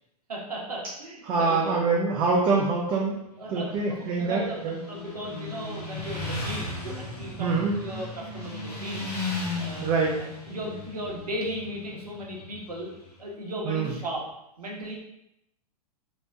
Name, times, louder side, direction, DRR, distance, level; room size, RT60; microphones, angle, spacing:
voice 1, 0.3-1.8 3.4-9.9 10.2-12.9 13.2-14.2 14.6-15.0, right 1 dB, 75° right, -2 dB, 1.0 m, -36 dB
voice 2, 1.3-3.1 3.5-4.8 7.4-7.7 9.8-10.1 13.7-13.9, right 4 dB, 25° right, -2 dB, 0.5 m, -25 dB
Motorcycle, 3.3-13.1, left 2 dB, 85° left, 1.1 m, -36 dB
3.2 x 3.0 x 2.6 m, 0.84 s
figure-of-eight pair, 105°, 20 cm